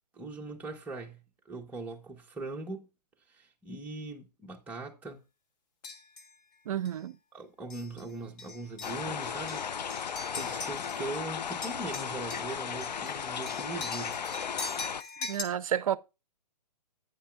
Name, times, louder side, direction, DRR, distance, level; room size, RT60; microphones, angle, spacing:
voice 1, 0.1-1.2 1.5-2.9 3.3-5.2 7.3-9.7 10.3-14.2, right 2 dB, 5° right, 1.1 m, -40 dB
sound 1, 5.8-6.3 6.9-7.0 7.7-8.0 8.4-11.2 11.5-15.4, left 3 dB, 20° left, 0.9 m, -42 dB
voice 2, 6.7-7.2 15.2-16.0, right 10 dB, 55° right, 0.6 m, -30 dB
sound 2, 8.8-15.0, left 7 dB, 80° left, 0.5 m, -36 dB
9.9 x 9.0 x 2.5 m
figure-of-eight pair, 135°, 21 cm